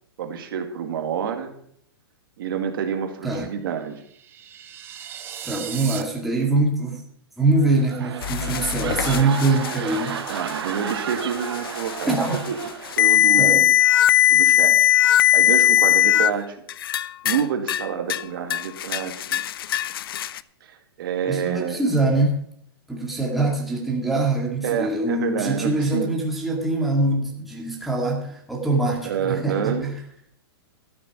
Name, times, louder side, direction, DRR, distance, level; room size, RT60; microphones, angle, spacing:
voice 1, 0.2-1.5 2.4-4.0 5.5-5.6 10.3-12.6 12.8-13.7 14.3-16.6 16.9-19.4 20.6-21.8 24.6-26.1 29.0-29.9, right 7 dB, 60° right, 5 dB, 2.0 m, -28 dB
sound 1, 4.0-6.0, right 10 dB, 15° right, 0.8 m, -36 dB
voice 2, 5.4-7.0 7.4-10.2 12.1-12.5 13.4-13.6 21.3-22.4 22.9-30.0, right 2 dB, ahead, -3 dB, 2.0 m, -23 dB
sound 2, 7.5-13.4 13.8-14.1, right 9 dB, 85° right, 1.0 m, -33 dB
sound 3, 8.2-16.3 16.7-17.4 17.7-18.2 18.5-20.4, left 12 dB, 65° left, 0.5 m, -20 dB
13.0 x 8.2 x 5.9 m, 0.67 s
hypercardioid pair, 160°, 13 cm